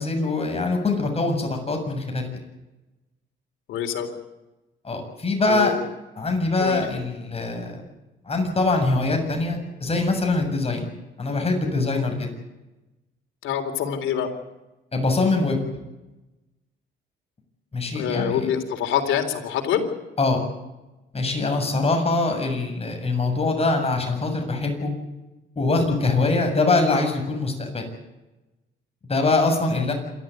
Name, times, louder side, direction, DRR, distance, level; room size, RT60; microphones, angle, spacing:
voice 1, 0.0-2.3 4.8-5.7 6.2-7.8 8.3-10.9 11.2-12.3 14.9-15.6 17.7-18.5 20.2-20.4 21.1-24.9 25.6-27.8 29.1-29.9, left 3 dB, 30° left, 3 dB, 7.5 m, -23 dB
voice 2, 3.7-4.1 5.5-5.8 6.6-6.8 13.4-14.3 17.9-19.8 21.6-21.8, left 9 dB, 85° left, 4 dB, 3.7 m, -25 dB
27.5 x 13.0 x 9.3 m, 1.0 s
cardioid pair, 90°, 20 cm